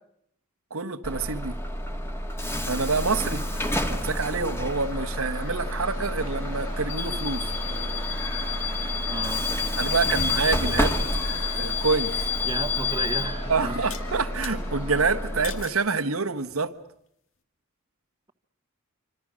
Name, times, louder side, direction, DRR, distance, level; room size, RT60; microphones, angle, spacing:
voice 1, 0.7-1.6 2.7-3.4 3.9-7.5 9.8-10.9 11.5-12.2 13.5-16.7, right 4 dB, 85° right, 1.4 m, -27 dB
Bus / Alarm, 1.0-15.6, left 2 dB, 10° left, 2.2 m, -29 dB
sound 1, 2.7-15.1, left 1 dB, 85° left, 6.2 m, -42 dB
voice 2, 9.0-9.4 12.5-13.8, right 2 dB, 20° right, 1.3 m, -33 dB
sound 2, 13.9-14.6 15.4-15.8 16.5-16.9, left 8 dB, 65° left, 2.1 m, -40 dB
27.5 x 25.5 x 6.4 m
head